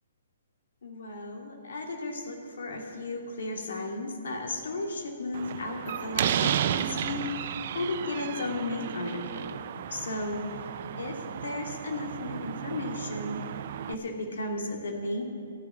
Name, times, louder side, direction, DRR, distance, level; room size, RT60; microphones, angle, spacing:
voice 1, 0.8-7.3 7.7-9.6 9.9-10.6 11.0-13.4 13.9-15.2, left 2 dB, 65° left, 1 dB, 2.6 m, -34 dB
Slam, 5.3-14.0, right 9 dB, 50° right, 0.5 m, -33 dB
14.0 x 7.0 x 9.6 m, 2.4 s
figure-of-eight pair, 130°, 0 cm